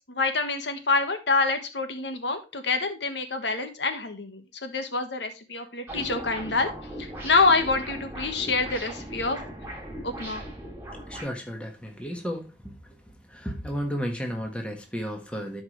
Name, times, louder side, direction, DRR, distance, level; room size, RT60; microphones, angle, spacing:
voice 1, 0.1-6.7 7.0-9.4 10.0-10.4, left 3 dB, 85° left, 7 dB, 1.5 m, -26 dB
sound 1, 5.9-11.2, equal, 15° right, 3.2 m, -38 dB
voice 2, 10.8-12.7 13.3-15.6, equal, 5° left, 2 dB, 1.5 m, -33 dB
12.0 x 5.1 x 3.2 m, 0.27 s
head